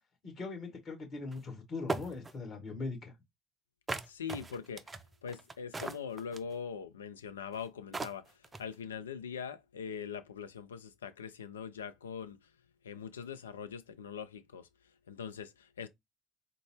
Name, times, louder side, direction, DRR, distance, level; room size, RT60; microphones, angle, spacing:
voice 1, 0.2-3.1, left 3 dB, 45° left, 1.8 m, -40 dB
sound 1, 1.3-1.4 1.9-2.3 3.9-6.5 7.5-7.6 7.9-8.7, right 3 dB, 20° right, 0.4 m, -38 dB
voice 2, 4.1-4.8 5.2-8.3 8.6-12.4 12.8-14.7 15.1-15.9, left 7 dB, 80° left, 0.3 m, -42 dB
3.7 x 2.3 x 3.2 m
figure-of-eight pair, 55°, 0 cm